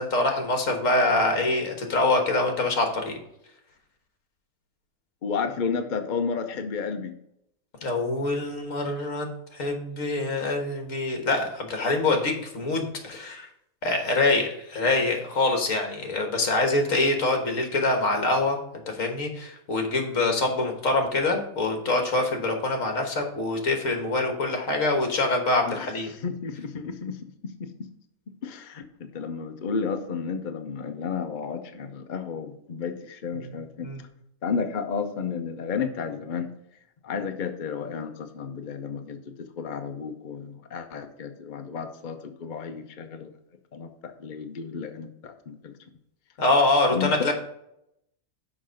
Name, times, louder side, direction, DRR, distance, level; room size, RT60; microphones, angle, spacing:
voice 1, 0.0-3.2 7.8-13.5 13.8-18.6 18.9-26.1 33.4-33.5 33.8-34.0 46.4-47.3, left 2 dB, 65° left, 4 dB, 1.7 m, -25 dB
voice 2, 5.2-7.1 25.7-27.9 28.4-28.8 29.1-33.9 34.4-36.5 37.0-43.3 43.7-45.7 46.9-47.3, left 6 dB, 45° left, 6 dB, 0.6 m, -32 dB
6.2 x 5.2 x 6.3 m, 0.78 s
omnidirectional pair, 1.5 m